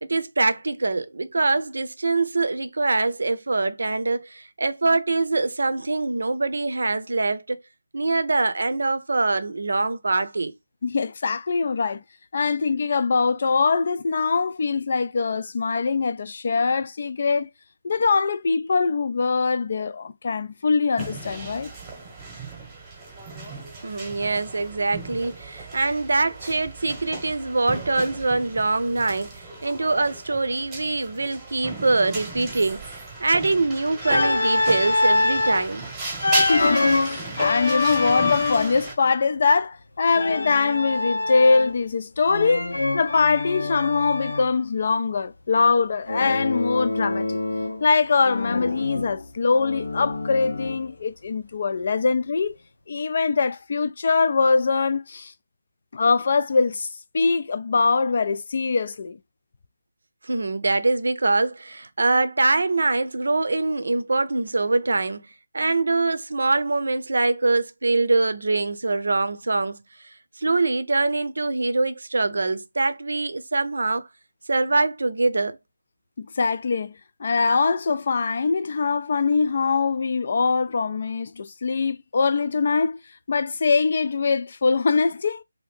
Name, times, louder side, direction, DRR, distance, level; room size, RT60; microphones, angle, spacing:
voice 1, 0.0-7.6 7.9-10.5 23.8-32.9 33.2-35.8 60.2-65.3 65.5-69.8 70.4-74.1 74.5-75.6, right 3 dB, 70° right, 0.5 m, -24 dB
voice 2, 10.8-12.0 12.3-17.5 17.8-21.7 36.4-42.7 42.9-47.4 47.8-52.6 52.9-55.3 55.9-56.9 57.1-59.2 76.2-83.0 83.3-85.4, left 4 dB, 45° left, 0.3 m, -23 dB
sound 1, 21.0-38.9, right 3 dB, 10° right, 0.9 m, -35 dB
Organ, 34.0-35.7 36.2-38.8 40.1-41.8 42.2-44.5 46.1-47.9 48.2-50.9, left 2 dB, 90° left, 0.8 m, -25 dB
2.7 x 2.5 x 3.4 m
figure-of-eight pair, 165°, 0 cm